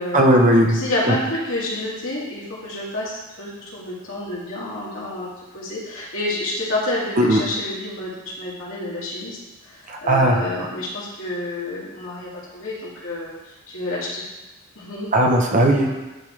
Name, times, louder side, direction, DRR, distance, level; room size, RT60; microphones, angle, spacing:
voice 1, 0.1-0.8 1.1-1.2 7.2-7.4 9.9-10.4 15.1-15.9, right 1 dB, 40° right, 1 dB, 0.8 m, -16 dB
voice 2, 0.7-9.4 9.6-14.2 14.8-15.1 15.8-15.9, left 1 dB, 75° left, -7 dB, 2.3 m, -29 dB
10.5 x 3.6 x 3.2 m, 1.1 s
head